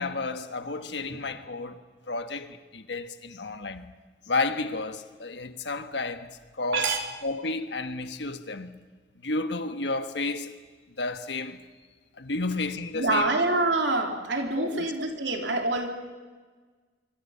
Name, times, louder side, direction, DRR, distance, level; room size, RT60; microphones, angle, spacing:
voice 1, 0.0-1.8 2.1-3.9 4.3-6.9 7.2-8.8 9.2-10.6 11.0-11.6 12.2-13.3 14.6-14.9, left 3 dB, 75° left, 1.4 m, -32 dB
voice 2, 12.9-15.9, right 2 dB, 90° right, 3.2 m, -26 dB
24.5 x 24.5 x 5.7 m
head